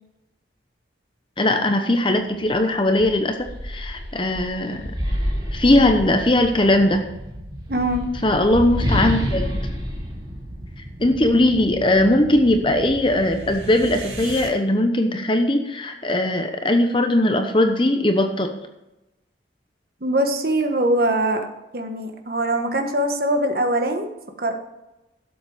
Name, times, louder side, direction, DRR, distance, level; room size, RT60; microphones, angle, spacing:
voice 1, 1.4-3.3 3.6-4.9 5.5-7.1 8.2-9.7 11.0-18.5, left 1 dB, 25° left, 6 dB, 0.9 m, -19 dB
sound 1, 2.4-2.6 3.0-6.6 7.5-11.2, equal, 20° right, 3.1 m, -28 dB
sound 2, 4.7-14.5, right 1 dB, 70° right, 2.3 m, -37 dB
voice 2, 7.7-8.1 20.0-21.4 21.7-24.1 24.4-24.5, right 1 dB, 50° right, 4 dB, 1.5 m, -22 dB
12.0 x 7.9 x 5.0 m, 0.95 s
head